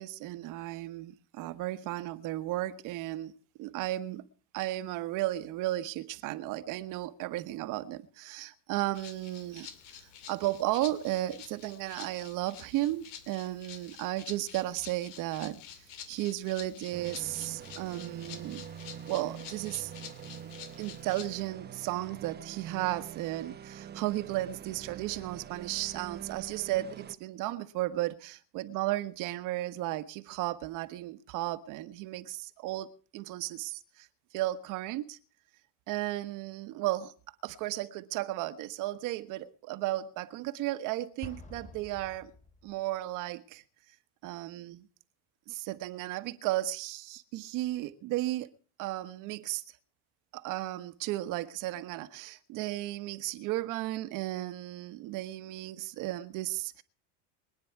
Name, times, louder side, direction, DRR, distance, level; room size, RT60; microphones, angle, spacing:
voice 1, 0.0-3.3 3.6-4.2 4.5-9.7 10.3-15.6 16.1-18.7 19.1-19.9 20.8-32.9 33.1-34.1 34.3-35.2 35.9-37.1 37.4-42.3 42.6-43.6 44.2-44.9 45.5-48.5 48.8-49.6 50.3-56.8, right 16 dB, 60° right, 1.4 m, -34 dB
Rattle (instrument), 8.9-21.5, left 9 dB, 90° left, 2.5 m, -49 dB
sound 1, 16.9-27.2, right 8 dB, 25° right, 1.1 m, -45 dB
Explosion, 41.2-42.9, left 2 dB, 20° left, 2.9 m, -48 dB
24.0 x 9.6 x 4.7 m
supercardioid pair, 115°, 36 cm